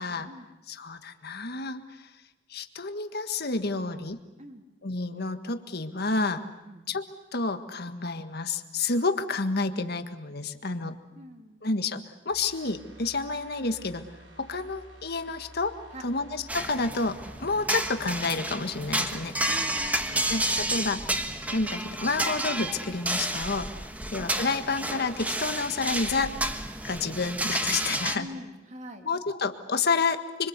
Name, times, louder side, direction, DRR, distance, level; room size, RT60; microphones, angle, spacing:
voice 1, 0.7-2.0 2.5-4.2 4.8-6.4 6.9-7.0 7.3-11.0 11.6-14.1 14.4-15.8 16.0-19.4 20.3-21.0 21.5-23.7 24.1-26.4 26.8-28.3 29.0-30.5, left 3 dB, 60° left, 8 dB, 1.7 m, -29 dB
voice 2, 11.1-11.6 15.9-16.2 19.5-20.3 28.1-29.1, equal, 40° right, 4 dB, 3.1 m, -44 dB
sound 1, 12.3-21.0 21.3-21.4, right 1 dB, 80° right, 6.5 m, -52 dB
sound 2, 16.5-28.2, right 1 dB, 10° right, 1.4 m, -31 dB
25.5 x 25.5 x 8.3 m, 1.0 s
head